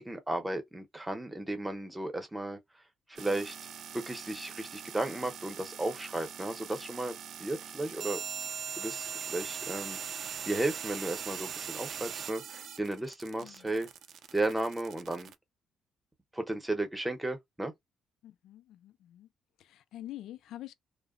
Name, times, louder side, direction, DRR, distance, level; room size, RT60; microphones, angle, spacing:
voice 1, 0.0-2.6 3.1-3.6 3.9-8.2 8.8-10.0 10.5-13.9 14.3-15.3 16.3-17.7, right 2 dB, 10° right, 0.8 m, -34 dB
sound 1, 3.2-15.3, right 7 dB, 70° right, 0.4 m, -41 dB
voice 2, 13.4-13.8 18.2-19.3 19.6-20.7, left 13 dB, 80° left, 0.3 m, -46 dB
2.7 x 2.1 x 2.4 m
cardioid pair, 90°, 0 cm